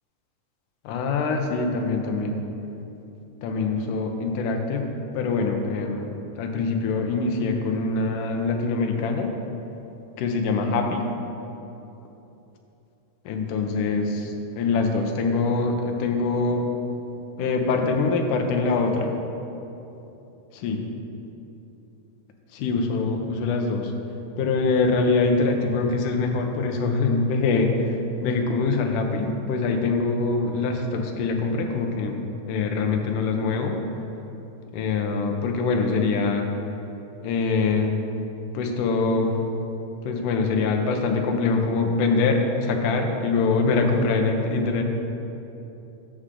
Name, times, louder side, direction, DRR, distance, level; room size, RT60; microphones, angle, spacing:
voice 1, 0.8-2.4 3.4-9.4 10.2-11.1 13.3-16.7 17.4-19.2 20.5-20.9 22.5-23.9 24.4-33.8 34.7-36.5 37.2-38.0 38.5-39.4 40.0-44.8, left 3 dB, 75° left, 3 dB, 2.3 m, -24 dB
13.5 x 7.1 x 3.8 m, 3.0 s
omnidirectional pair, 3.8 m